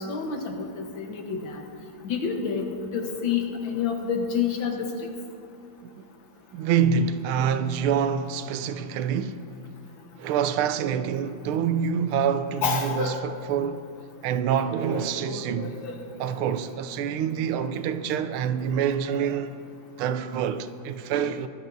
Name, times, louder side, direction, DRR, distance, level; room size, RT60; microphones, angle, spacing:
voice 1, 0.0-1.6 2.0-2.7 2.9-4.9 12.6-13.2 14.8-16.0, left 6 dB, 70° left, 1.8 m, -29 dB
voice 2, 6.5-9.4 10.2-13.8 14.2-15.8 16.2-19.6 20.0-21.5, right 7 dB, 90° right, 1.5 m, -26 dB
19.0 x 12.0 x 2.7 m
omnidirectional pair, 2.3 m